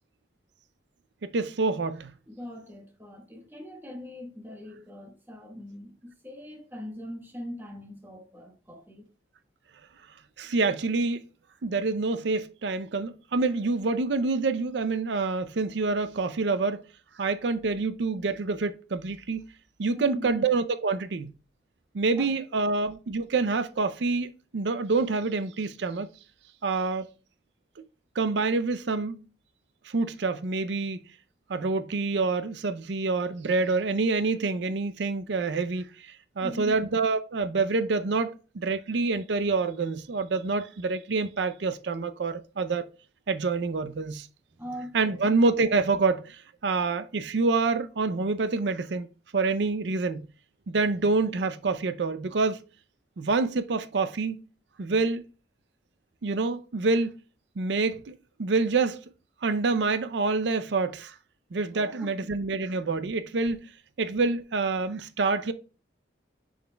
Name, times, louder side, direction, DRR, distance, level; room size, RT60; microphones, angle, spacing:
voice 1, 1.2-2.1 10.4-11.2 11.6-16.8 17.2-19.4 19.8-21.3 21.9-26.1 26.6-27.1 28.2-29.2 29.8-31.0 31.5-42.9 43.3-44.3 44.9-49.1 49.3-50.3 50.7-52.6 53.2-54.4 54.8-55.2 56.2-57.1 57.6-59.0 59.4-61.1 61.5-63.6 64.0-65.5, right 3 dB, 75° right, 0.5 m, -27 dB
voice 2, 2.3-9.1 19.9-20.4 22.2-22.3 36.4-36.7 44.6-45.2 61.7-62.1, left 1 dB, 10° right, 1.2 m, -41 dB
6.9 x 6.3 x 2.2 m
head